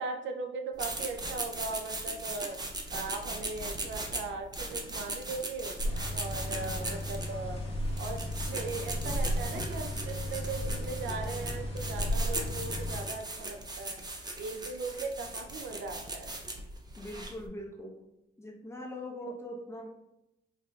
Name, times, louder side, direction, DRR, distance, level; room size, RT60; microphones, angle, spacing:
voice 1, 0.0-7.6 8.0-14.0 14.4-16.3, right 3 dB, 70° right, 5 dB, 0.5 m, -39 dB
sound 1, 0.8-17.5, right 2 dB, 20° right, 0.6 m, -39 dB
sound 2, 5.8-13.0, equal, 30° left, 1.3 m, -34 dB
voice 2, 6.5-7.0 17.0-18.0 18.4-19.9, left 1 dB, 15° left, -1 dB, 0.8 m, -42 dB
4.7 x 2.8 x 2.3 m, 0.89 s
cardioid pair, 90°, 20 cm